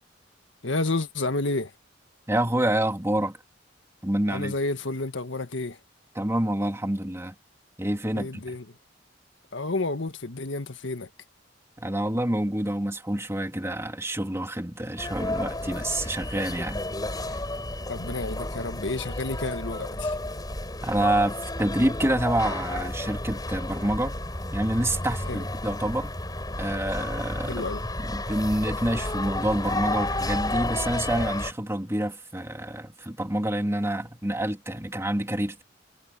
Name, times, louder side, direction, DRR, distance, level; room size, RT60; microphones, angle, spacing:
voice 1, 0.6-1.7 4.3-5.8 8.1-8.8 9.5-11.1 17.9-20.2 25.3-25.4 27.5-27.8, left 2 dB, 90° left, 1.6 m, -30 dB
voice 2, 2.3-3.4 4.0-4.5 6.1-7.3 7.8-8.6 11.8-16.8 17.1-17.4 20.8-24.2 24.5-26.1 26.6-27.6 28.0-35.6, right 1 dB, 15° right, 2.7 m, -27 dB
sound 1, 15.0-31.5, left 1 dB, 20° left, 6.3 m, -32 dB
head